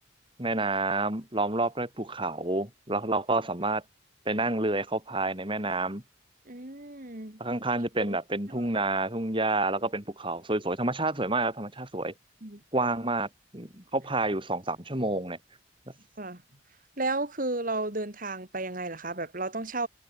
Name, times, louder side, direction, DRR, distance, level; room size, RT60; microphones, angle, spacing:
voice 1, 0.4-3.8 4.3-6.0 7.4-12.1 12.7-13.3 13.5-15.4, right 2 dB, 25° right, 3.8 m, -29 dB
voice 2, 6.5-7.4 8.0-8.2 8.6-8.7 12.4-12.6 16.2-16.4 17.0-19.9, right 2 dB, 45° right, 2.9 m, -33 dB
head